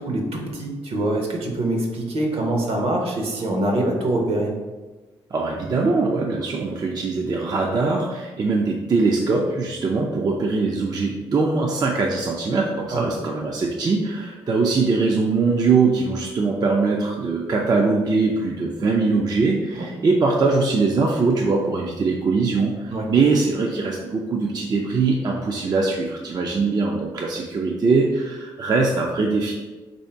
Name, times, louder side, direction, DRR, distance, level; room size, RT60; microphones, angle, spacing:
voice 1, 0.0-4.5 12.9-13.1 19.8-19.9 22.9-23.1, right 1 dB, 65° right, 1 dB, 0.9 m, -24 dB
voice 2, 5.3-29.5, right 4 dB, 40° right, 0 dB, 0.4 m, -22 dB
3.2 x 2.7 x 4.4 m, 1.2 s
cardioid pair, 90°, 11 cm